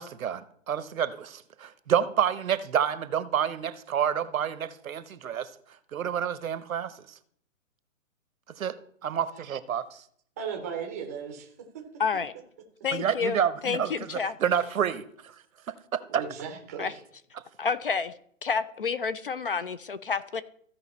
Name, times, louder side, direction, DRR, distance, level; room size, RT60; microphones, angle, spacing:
voice 1, 0.0-5.5 5.9-7.0 8.5-8.8 9.0-10.0 12.9-15.4 15.7-16.2, right 8 dB, 80° right, 0.9 m, -29 dB
voice 2, 10.4-11.8 16.1-17.0, right 6 dB, 10° right, 0.6 m, -36 dB
voice 3, 12.0-12.3 12.8-14.3 16.8-16.9 17.6-18.1 18.4-20.4, left 5 dB, 45° left, 0.4 m, -29 dB
15.0 x 5.1 x 4.1 m
hypercardioid pair, 165°, 41 cm